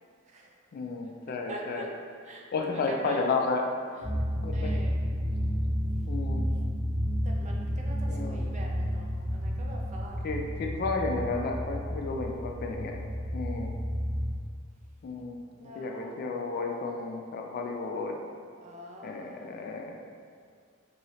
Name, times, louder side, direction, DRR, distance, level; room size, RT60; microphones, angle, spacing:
voice 1, 0.7-1.9 2.5-3.7 4.4-4.7 6.1-6.5 8.1-8.4 10.2-13.0 13.3-13.7 15.0-15.4 15.7-18.2 19.0-20.0, left 3 dB, 50° left, 2 dB, 0.3 m, -32 dB
voice 2, 1.5-1.9 2.2-3.2 3.9-4.1 4.5-5.0 7.2-10.3 12.2-12.6 13.6-13.8 15.6-16.3 18.6-19.7, right 1 dB, 35° right, 0 dB, 0.4 m, -44 dB
sound 1, 4.0-14.3, equal, 30° left, 0.9 m, -31 dB
3.0 x 2.7 x 2.7 m, 2.1 s
head